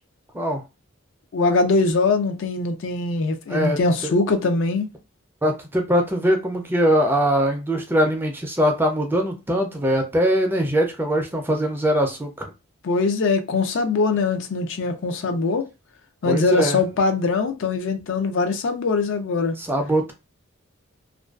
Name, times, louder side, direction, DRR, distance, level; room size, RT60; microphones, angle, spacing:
voice 1, 1.3-4.9 12.8-15.7 16.2-19.6, left 3 dB, 65° left, 0.4 m, -22 dB
voice 2, 3.5-4.1 5.4-12.5 16.2-16.8 19.6-20.1, equal, 10° right, 0.4 m, -22 dB
2.4 x 2.2 x 2.3 m
head